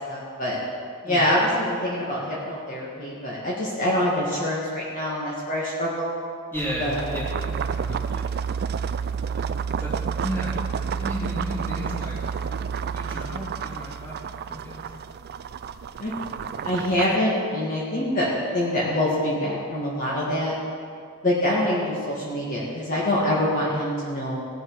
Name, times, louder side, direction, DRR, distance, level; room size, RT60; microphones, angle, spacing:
voice 1, 0.1-0.6 1.0-6.1 6.8-7.0 16.0-16.1 16.6-18.3 18.5-20.6 21.2-24.4, left 1 dB, 40° left, -6 dB, 1.8 m, -25 dB
voice 2, 6.5-8.2 9.2-9.5 9.8-10.5 10.8-12.2 12.9-14.2 14.5-14.8, equal, 10° left, -7 dB, 3.1 m, -34 dB
sound 1, 6.6-17.2, right 6 dB, 45° right, 0.3 m, -30 dB
17.5 x 7.6 x 4.7 m, 2.3 s
head